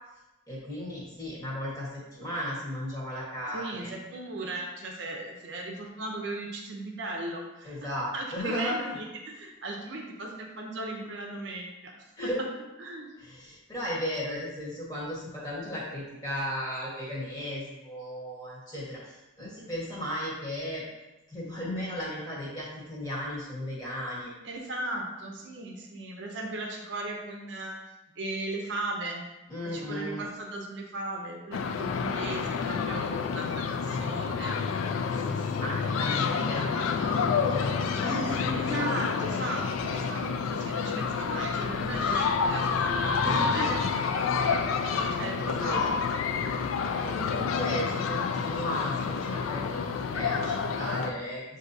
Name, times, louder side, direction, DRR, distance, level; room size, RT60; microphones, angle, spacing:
voice 1, 0.5-3.9 7.6-9.0 12.2-12.4 13.2-20.8 21.3-24.3 29.5-30.3 35.1-38.6 43.2-43.7 45.4-45.9 46.8-51.4, equal, 20° left, -6 dB, 1.2 m, -35 dB
voice 2, 3.5-12.1 12.8-13.1 24.4-27.8 28.2-29.2 29.6-34.6 35.9-36.2 38.5-43.2 43.5-45.9, right 2 dB, 60° right, 1 dB, 0.6 m, -37 dB
sound 1, 31.5-51.1, left 5 dB, 90° left, 0.3 m, -29 dB
6.3 x 2.7 x 2.6 m, 1.0 s
head